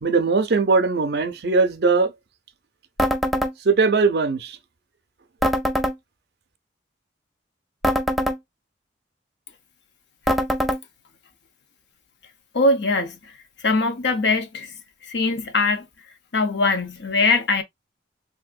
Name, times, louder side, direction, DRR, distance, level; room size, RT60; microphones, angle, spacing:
voice 1, 0.0-2.1 3.6-4.6, right 4 dB, 60° right, 0.5 m, -20 dB
sound 1, 3.0-3.5 5.4-5.9 7.8-8.4 10.3-10.8, equal, ahead, 0.3 m, -22 dB
voice 2, 12.5-13.3 13.6-14.7 15.1-15.9 16.3-17.6, left 3 dB, 75° left, 0.7 m, -21 dB
3.4 x 2.7 x 2.4 m
head